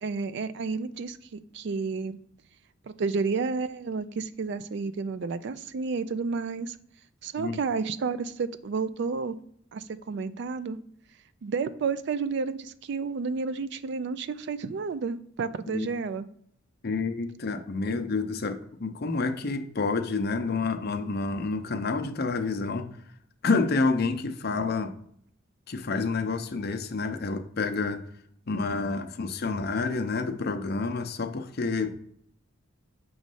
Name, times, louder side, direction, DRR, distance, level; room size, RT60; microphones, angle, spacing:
voice 1, 0.0-2.2 2.9-6.8 7.2-9.4 9.7-10.8 11.4-16.2, right 4 dB, 60° right, 0.3 m, -31 dB
voice 2, 16.8-23.0 23.4-24.9 25.7-28.0 28.5-31.9, left 3 dB, 50° left, 0.6 m, -29 dB
6.3 x 3.1 x 5.3 m
head